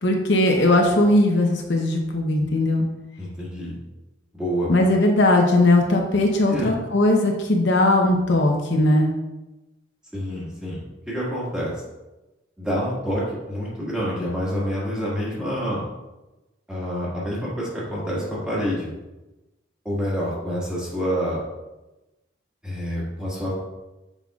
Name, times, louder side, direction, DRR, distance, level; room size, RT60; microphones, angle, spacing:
voice 1, 0.0-2.9 4.7-9.1, left 1 dB, 65° left, 1 dB, 0.8 m, -19 dB
voice 2, 3.2-3.7 4.3-4.7 6.5-6.7 10.1-11.7 12.6-15.8 16.7-18.9 19.9-21.4 22.6-23.5, equal, 5° right, -7 dB, 1.7 m, -27 dB
7.2 x 5.5 x 2.4 m, 1.0 s
head